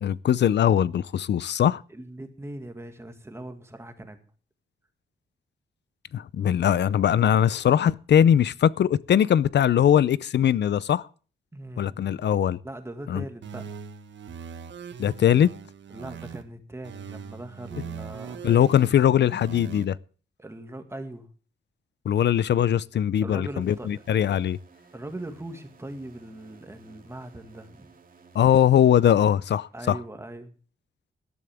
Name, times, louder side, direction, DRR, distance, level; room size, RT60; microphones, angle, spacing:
voice 1, 0.0-1.8 6.1-11.1 11.8-12.6 13.1-13.2 15.0-15.5 18.4-20.0 22.0-24.6 28.3-30.0, left 9 dB, 65° left, 0.5 m, -21 dB
voice 2, 1.9-4.2 11.5-12.0 12.6-13.7 15.9-18.5 20.4-21.3 23.2-23.9 24.9-27.9 29.7-30.5, right 1 dB, 15° right, 1.9 m, -40 dB
sound 1, 13.4-16.4 16.8-19.8, right 7 dB, 70° right, 1.4 m, -40 dB
sound 2, 23.6-30.1, right 4 dB, 45° right, 2.3 m, -56 dB
18.0 x 12.5 x 3.5 m
wide cardioid pair, 160°, 19 cm